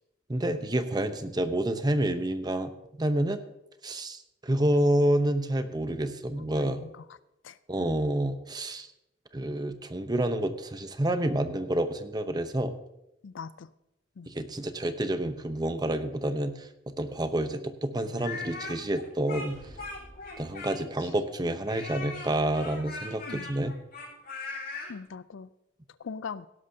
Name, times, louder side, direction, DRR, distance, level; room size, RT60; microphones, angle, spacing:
voice 1, 0.3-2.7 3.0-3.4 3.8-6.8 7.7-8.9 9.3-12.7 14.3-16.7 17.0-19.6 20.4-23.7, right 1 dB, 20° right, 9 dB, 0.8 m, -28 dB
voice 2, 6.6-6.9 7.4-7.9 13.2-13.7 14.2-14.3 23.3-23.5 24.9-25.5 26.0-26.5, left 5 dB, 80° left, 16 dB, 0.5 m, -41 dB
Speech, 18.1-21.0 21.7-24.9, left 3 dB, 55° left, 4.7 m, -39 dB
sound 1, 19.5-21.1, equal, 45° right, 4.0 m, -51 dB
17.5 x 11.5 x 2.8 m, 0.87 s
head